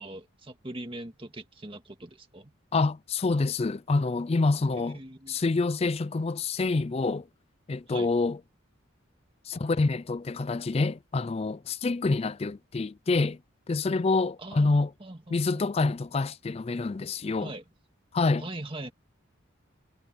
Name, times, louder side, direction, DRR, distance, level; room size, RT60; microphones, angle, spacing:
voice 1, 0.0-2.5 4.9-5.4 7.9-8.1 14.4-16.0 17.4-17.6 18.4-18.9, right 1 dB, 25° right, 2.1 m, -41 dB
voice 2, 2.7-5.0 5.3-7.3 7.7-8.4 9.5-13.4 13.7-14.9 15.3-17.5 18.1-18.4, left 3 dB, 30° left, 0.4 m, -27 dB
head